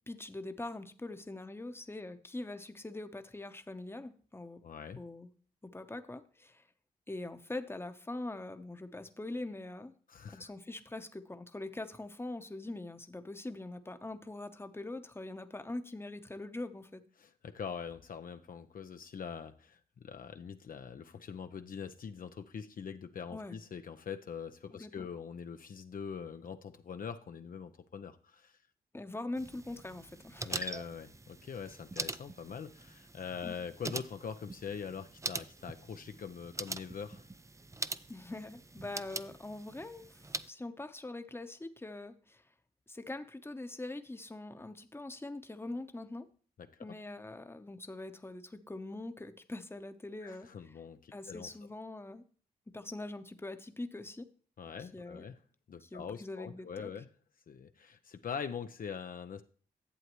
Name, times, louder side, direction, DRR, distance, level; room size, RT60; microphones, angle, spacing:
voice 1, 0.1-4.6 4.9-5.3 5.6-6.6 7.1-9.9 10.3-17.0 23.3-23.6 24.7-25.1 28.9-30.5 33.4-33.6 38.1-40.2 40.5-42.4 42.9-46.3 46.8-50.7 51.1-52.2 52.7-54.3 54.9-55.3 55.8-56.9, left 2 dB, 15° left, 9 dB, 0.9 m, -43 dB
voice 2, 4.6-5.0 10.1-10.5 17.2-28.6 30.4-37.3 46.6-47.0 50.2-51.5 54.6-55.4 55.7-57.1 57.5-59.4, left 6 dB, 60° left, 7 dB, 0.7 m, -43 dB
sound 1, 29.4-40.5, right 3 dB, 20° right, 0.5 m, -43 dB
11.0 x 7.8 x 3.1 m, 0.42 s
supercardioid pair, 50°, 16 cm